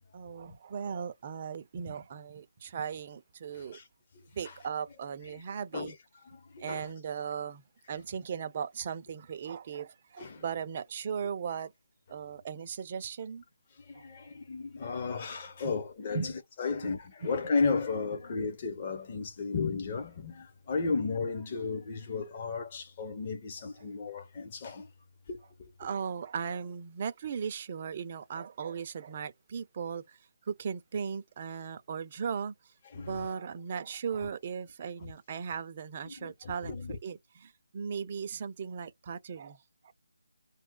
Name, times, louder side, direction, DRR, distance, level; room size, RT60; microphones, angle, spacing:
voice 1, 0.1-3.8 4.3-5.9 6.6-7.6 7.9-11.7 12.1-13.4 13.9-14.3 15.6-15.7 16.1-16.4 25.8-30.2 30.5-32.5 33.0-39.6 39.8-39.9, right 7 dB, 35° right, 0.6 m, -37 dB
voice 2, 6.3-6.9 10.2-10.4 13.8-16.3 16.6-24.9 25.3-25.4 32.9-33.3 36.1-37.0, left 4 dB, 30° left, 1.0 m, -34 dB
2.3 x 2.3 x 3.8 m
figure-of-eight pair, 160°, 0 cm